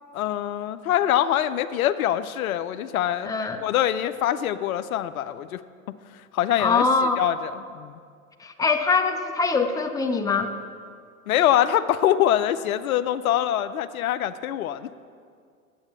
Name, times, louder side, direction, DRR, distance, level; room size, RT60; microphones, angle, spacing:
voice 1, 0.1-3.3 3.6-5.6 6.3-6.8 7.2-7.9 11.3-15.1, left 11 dB, 80° left, 12 dB, 0.6 m, -24 dB
voice 2, 3.2-3.6 6.6-7.2 8.4-10.5, left 4 dB, 10° left, 5 dB, 0.7 m, -23 dB
8.8 x 8.3 x 7.4 m, 2.2 s
hypercardioid pair, 100°, 42 cm